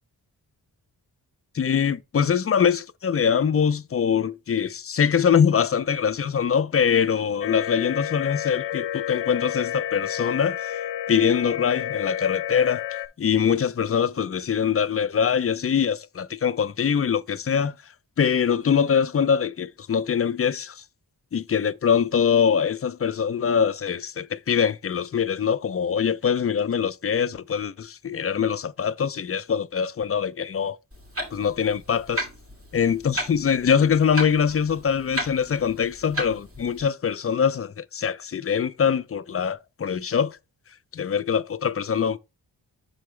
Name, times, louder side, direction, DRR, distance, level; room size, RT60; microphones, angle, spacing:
voice 1, 1.5-10.8 11.1-12.8 13.2-17.7 18.2-20.8 21.3-30.8 31.3-32.3 32.7-40.4 40.9-42.2, left 7 dB, 35° left, 0.4 m, -23 dB
sound 1, 7.4-13.1, left 11 dB, 85° left, 0.6 m, -30 dB
Clock, 30.9-36.8, equal, 30° right, 2.6 m, -35 dB
6.9 x 4.7 x 3.2 m
cardioid pair, 70°, 41 cm